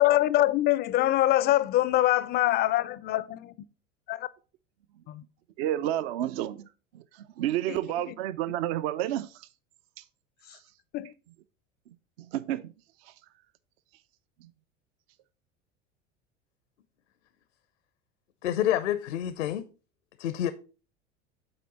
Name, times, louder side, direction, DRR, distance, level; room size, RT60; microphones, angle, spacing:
voice 1, 0.0-3.5 4.1-4.3 5.1-5.2 7.7-7.8 10.9-11.1, left 15 dB, 30° left, 0.3 m, -24 dB
voice 2, 5.6-6.7 6.9-9.5 10.5-10.6 12.3-12.7 13.1-13.2, right 12 dB, 55° right, 0.5 m, -30 dB
voice 3, 18.4-19.7 20.2-20.5, left 11 dB, 75° left, 0.6 m, -28 dB
7.9 x 4.4 x 4.0 m
figure-of-eight pair, 75°, 36 cm